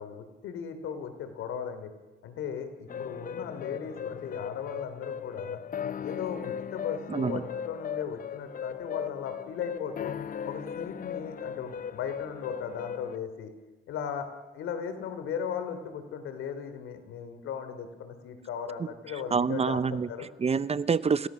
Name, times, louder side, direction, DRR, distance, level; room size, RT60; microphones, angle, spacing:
voice 1, 0.0-1.9 2.2-5.6 6.0-10.1 10.4-13.5 13.9-14.3 14.5-20.3, left 7 dB, 85° left, 8 dB, 3.2 m, -37 dB
sound 1, 2.9-13.2, left 8 dB, 45° left, 0.7 m, -37 dB
voice 2, 7.1-7.4 19.3-20.1 20.4-21.3, right 5 dB, 30° right, 16 dB, 0.8 m, -26 dB
29.5 x 17.0 x 6.3 m, 1.1 s
cardioid pair, 90°, 20 cm